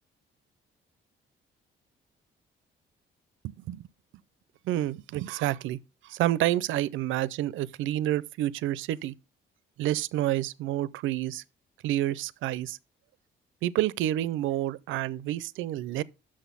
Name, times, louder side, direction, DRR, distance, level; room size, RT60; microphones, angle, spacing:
voice 1, 3.4-3.9 4.6-5.8 6.0-9.1 9.8-11.4 11.8-12.8 13.6-16.0, right 14 dB, 85° right, 0.4 m, -29 dB
6.3 x 6.2 x 5.4 m
cardioid pair, 90°, 20 cm